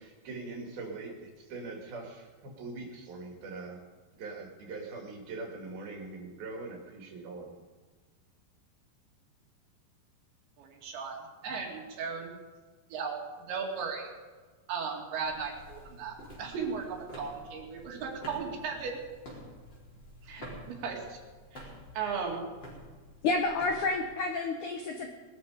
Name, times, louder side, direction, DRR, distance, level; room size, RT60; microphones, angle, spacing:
voice 1, 0.0-3.8 4.2-7.6, right 3 dB, 60° right, 1 dB, 4.2 m, -42 dB
voice 2, 10.6-11.2 11.4-12.3 12.9-14.1 14.7-19.0 20.2-20.5 20.8-21.2 21.5-21.7 21.9-22.5, right 5 dB, 80° right, 0 dB, 4.8 m, -36 dB
sound 1, 15.2-24.1, equal, 25° left, 4.5 m, -49 dB
voice 3, 23.2-25.1, left 3 dB, 75° left, 4 dB, 1.8 m, -29 dB
20.0 x 12.5 x 5.1 m, 1.4 s
omnidirectional pair, 5.1 m